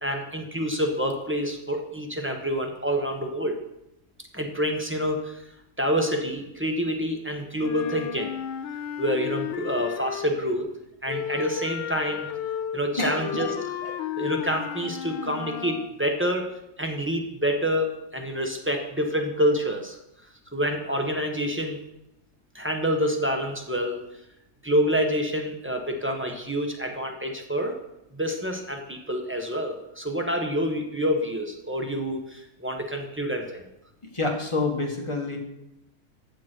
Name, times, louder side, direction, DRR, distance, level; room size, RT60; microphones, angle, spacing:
voice 1, 0.0-3.6 4.3-5.4 5.8-8.3 9.0-10.7 11.0-12.3 12.7-13.5 14.2-16.4 16.8-20.0 20.5-21.8 22.5-24.0 24.6-27.7 28.1-33.6, equal, 10° right, 3 dB, 0.9 m, -27 dB
Wind instrument woodwind instrument, 7.6-10.5 11.1-15.9, left 10 dB, 80° left, 1.4 m, -33 dB
voice 2, 13.0-13.6 13.8-14.0 34.1-35.4, left 3 dB, 15° left, 1 dB, 1.4 m, -28 dB
14.5 x 7.4 x 4.6 m, 0.85 s
omnidirectional pair, 2.2 m